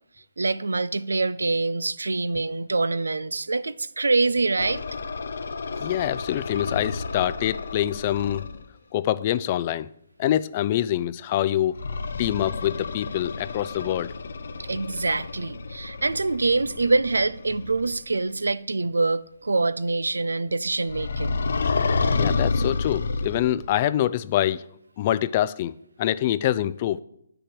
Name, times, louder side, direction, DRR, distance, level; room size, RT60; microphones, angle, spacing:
voice 1, 0.4-4.8 14.7-21.4, right 3 dB, 85° right, 0.5 m, -25 dB
sound 1, 4.6-8.6 11.7-18.1 20.9-23.8, left 4 dB, 65° left, 0.9 m, -30 dB
voice 2, 5.8-8.5 8.9-9.9 10.2-11.8 12.2-14.1 22.2-24.6 25.0-27.0, left 12 dB, 35° left, 0.5 m, -25 dB
10.0 x 6.9 x 7.7 m
figure-of-eight pair, 145°, 0 cm